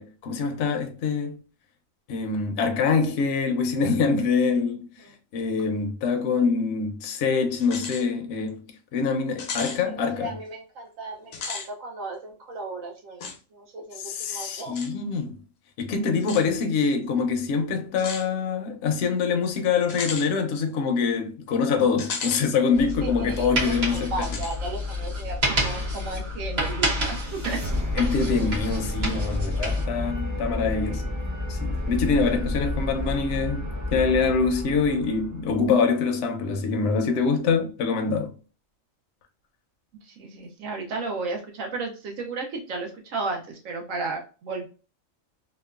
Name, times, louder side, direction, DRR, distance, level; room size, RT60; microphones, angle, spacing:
voice 1, 0.0-1.4 2.1-4.8 5.3-8.6 8.9-10.3 14.0-15.4 15.8-24.1 28.0-31.1 31.5-38.4, left 5 dB, 65° left, 0.8 m, -25 dB
sound 1, 7.6-8.1 8.5-8.6 9.4-9.8 11.2-11.7 13.2-13.4 14.8-14.9 16.2-16.5 18.0-18.3 19.9-20.3 22.0-22.5 22.9-23.0 24.2-24.6, left 5 dB, 90° left, 1.1 m, -34 dB
voice 2, 9.8-14.0 14.3-14.9 23.0-27.6 40.1-44.7, right 3 dB, 75° right, 1.0 m, -34 dB
sound 2, 22.7-29.8, left 1 dB, 55° right, 1.1 m, -29 dB
sound 3, 26.6-35.7, left 1 dB, 30° right, 0.3 m, -31 dB
2.9 x 2.2 x 2.2 m
omnidirectional pair, 1.4 m